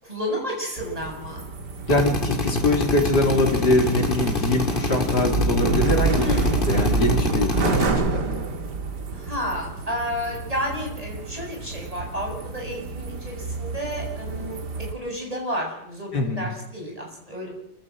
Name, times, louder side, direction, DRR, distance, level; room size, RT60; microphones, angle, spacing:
voice 1, 0.0-1.5 6.2-6.6 9.1-17.5, equal, 20° right, 0 dB, 7.9 m, -31 dB
sound 1, 0.8-14.9, right 4 dB, 80° right, 2.7 m, -29 dB
voice 2, 1.9-8.2 16.1-16.5, left 2 dB, 80° left, 3 dB, 3.9 m, -23 dB
Drill, 1.9-7.9, left 2 dB, 30° left, 2.5 m, -25 dB
28.0 x 16.0 x 7.8 m, 0.78 s
omnidirectional pair, 1.8 m